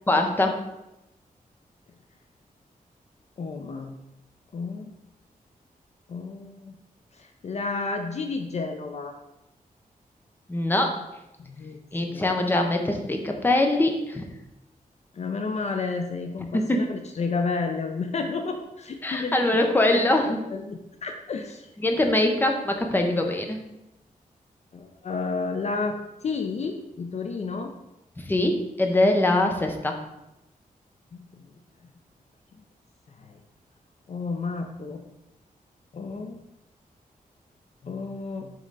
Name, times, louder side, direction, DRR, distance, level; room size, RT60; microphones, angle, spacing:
voice 1, 0.1-0.6 10.5-11.1 11.9-14.3 16.5-17.0 19.0-20.4 21.8-23.6 28.2-30.0, left 1 dB, 15° left, 3 dB, 0.7 m, -23 dB
voice 2, 3.4-4.0 4.5-5.0 6.1-6.8 7.1-9.2 11.4-12.3 15.1-21.7 24.7-27.7 31.1-31.4 33.2-33.4 34.1-35.0 35.9-36.4 37.8-38.5, left 4 dB, 50° left, 5 dB, 0.5 m, -32 dB
5.2 x 3.8 x 5.4 m, 0.91 s
wide cardioid pair, 170°, 15 cm